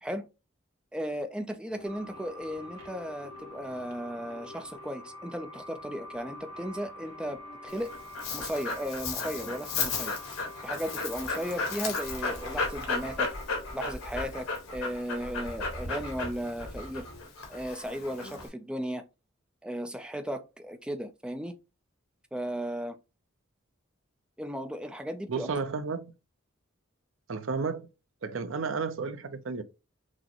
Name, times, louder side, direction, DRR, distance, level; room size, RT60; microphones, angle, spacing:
voice 1, 0.9-7.4 7.6-7.9 8.3-10.2 10.6-13.3 13.7-14.5 14.7-17.1 17.5-19.0 19.6-21.5 22.3-23.0 24.4-25.6, equal, 5° right, 0.4 m, -35 dB
sound 1, 1.7-17.2, left 2 dB, 60° left, 2.0 m, -50 dB
sound 2, 1.8-13.2, equal, 85° right, 1.8 m, -47 dB
Dog, 7.7-18.5, left 4 dB, 80° left, 1.5 m, -34 dB
voice 2, 25.3-26.1 27.3-27.9 28.2-29.6, right 4 dB, 65° right, 0.5 m, -32 dB
6.1 x 2.1 x 2.9 m
head